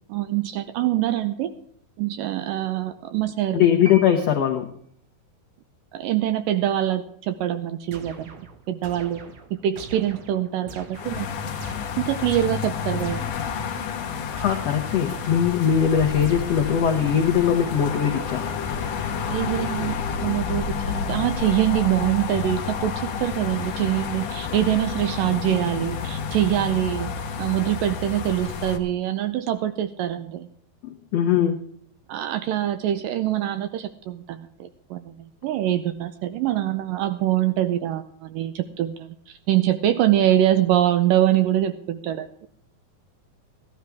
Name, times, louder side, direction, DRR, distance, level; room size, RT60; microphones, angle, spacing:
voice 1, 0.1-1.5 2.0-3.7 5.9-8.4 8.7-11.3 12.0-13.3 19.3-27.1 27.4-30.5 32.1-42.5, right 12 dB, 80° right, 10 dB, 2.0 m, -24 dB
voice 2, 3.5-4.7 14.3-18.5 30.8-31.6, left 9 dB, 80° left, 3 dB, 1.4 m, -21 dB
sound 1, 3.8-5.1, right 1 dB, 25° right, 0.4 m, -42 dB
sound 2, 7.9-13.5 14.4-15.7 16.2-19.9, right 4 dB, 60° right, 1.9 m, -44 dB
sound 3, 10.9-28.8, left 6 dB, 60° left, 1.9 m, -30 dB
15.0 x 13.0 x 3.5 m, 0.66 s
omnidirectional pair, 4.5 m